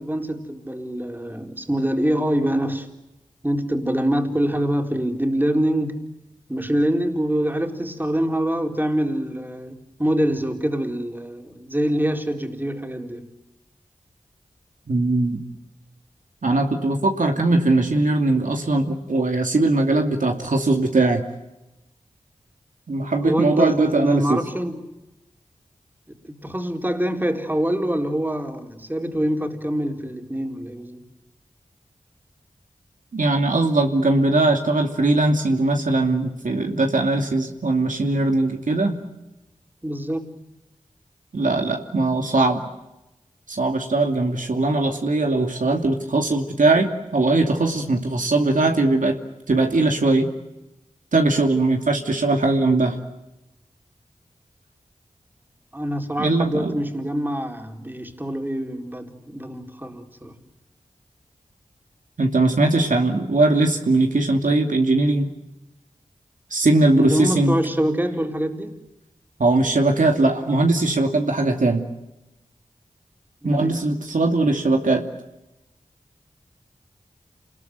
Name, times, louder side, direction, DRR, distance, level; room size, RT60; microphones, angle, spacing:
voice 1, 0.0-2.9 3.4-6.1 6.5-13.2 23.2-24.8 26.3-31.0 39.8-40.3 55.7-60.4 66.9-68.8 73.4-73.8, equal, 15° right, 3 dB, 4.1 m, -25 dB
voice 2, 14.9-15.4 16.4-21.2 22.9-24.4 33.1-39.0 41.3-42.6 43.5-49.2 49.5-50.3 51.1-53.0 56.2-56.8 62.2-65.3 66.5-67.6 69.4-71.8 73.4-75.0, right 2 dB, 75° right, 3 dB, 2.6 m, -20 dB
28.5 x 20.5 x 9.4 m, 0.97 s
cardioid pair, 45°, 13 cm